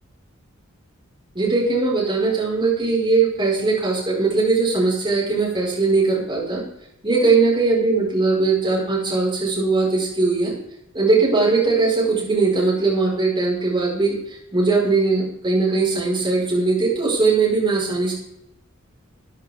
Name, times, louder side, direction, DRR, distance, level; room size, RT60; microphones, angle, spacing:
voice 1, 1.3-6.6 7.0-10.5 10.9-14.1 14.5-18.1, right 3 dB, 25° right, -5 dB, 5.1 m, -20 dB
14.0 x 10.5 x 3.6 m, 0.80 s
head